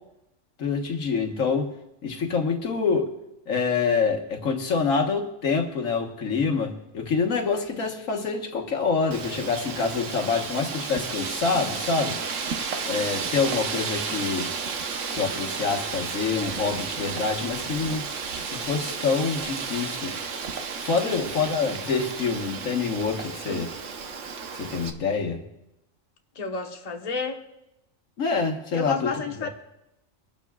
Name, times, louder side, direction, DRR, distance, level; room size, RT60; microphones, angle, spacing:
voice 1, 0.6-1.7 2.0-3.1 3.5-12.2 12.8-14.5 15.1-18.0 18.5-20.1 20.8-23.7 24.5-25.4 28.2-29.1 29.4-29.5, left 5 dB, 90° left, 1.7 m, -26 dB
Wind, 9.1-24.9, right 5 dB, 65° right, 1.2 m, -32 dB
voice 2, 26.3-27.4 28.7-29.5, left 4 dB, 35° left, 1.1 m, -31 dB
23.5 x 12.0 x 2.3 m
omnidirectional pair, 1.3 m